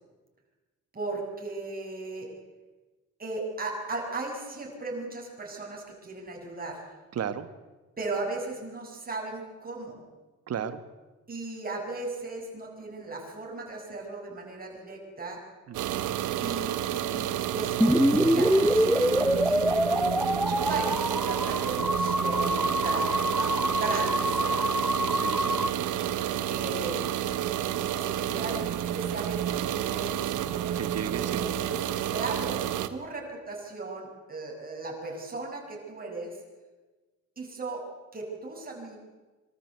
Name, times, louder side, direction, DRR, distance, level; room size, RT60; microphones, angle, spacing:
voice 1, 0.9-2.3 3.2-6.8 8.0-10.0 11.3-15.4 16.4-20.2 20.5-24.7 26.5-27.0 27.7-30.7 31.2-31.7 32.1-32.6 32.9-36.4 37.4-37.8 38.1-39.0, right 3 dB, 30° right, -1 dB, 6.8 m, -37 dB
voice 2, 7.1-7.5 10.5-10.8 15.7-16.1 20.5-20.6 25.1-25.7 30.7-31.4, right 8 dB, 55° right, 13 dB, 1.5 m, -35 dB
sound 1, 15.7-32.9, right 11 dB, 80° right, 1.1 m, -30 dB
sound 2, 17.8-25.7, equal, ahead, 0.6 m, -25 dB
sound 3, 20.7-29.1, left 2 dB, 75° left, 7.6 m, -51 dB
24.5 x 13.0 x 8.1 m, 1.2 s
cardioid pair, 90°, 30 cm